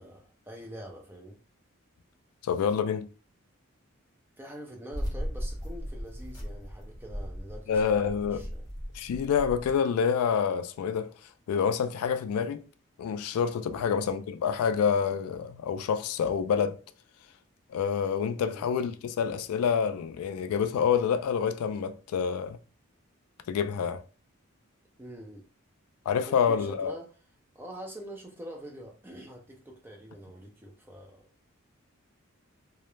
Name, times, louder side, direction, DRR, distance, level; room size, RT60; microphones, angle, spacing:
voice 1, 0.0-1.4 4.4-8.7 13.6-13.9 18.3-18.7 25.0-25.4 26.3-27.1 27.5-31.3, equal, 10° right, 0.4 m, -45 dB
voice 2, 2.4-3.1 7.7-8.4 8.9-11.1 11.5-12.6 13.0-16.8 17.7-22.6 23.5-24.0 26.1-27.0, left 7 dB, 90° left, 0.3 m, -27 dB
sound 1, 4.9-9.8, equal, 20° left, 0.8 m, -37 dB
2.3 x 2.0 x 3.0 m
head